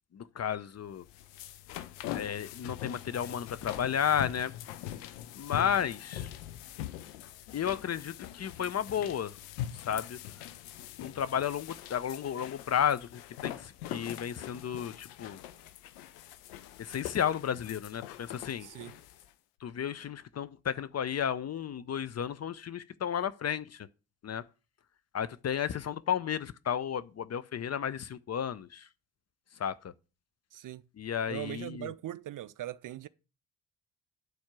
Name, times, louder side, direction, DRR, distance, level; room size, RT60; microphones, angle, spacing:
voice 1, 0.1-1.0 2.1-4.5 5.4-6.3 7.5-9.3 9.8-10.2 11.0-15.4 16.8-18.7 19.6-23.9 24.2-24.4 25.1-28.9 29.6-29.8 31.0-31.9, left 8 dB, 35° left, 0.5 m, -33 dB
sound 1, 0.9-19.3, left 12 dB, 85° left, 0.6 m, -43 dB
voice 2, 18.6-19.0 30.5-30.8 31.3-33.1, right 13 dB, 45° right, 0.5 m, -40 dB
9.4 x 4.4 x 6.0 m
hypercardioid pair, 40°, 47 cm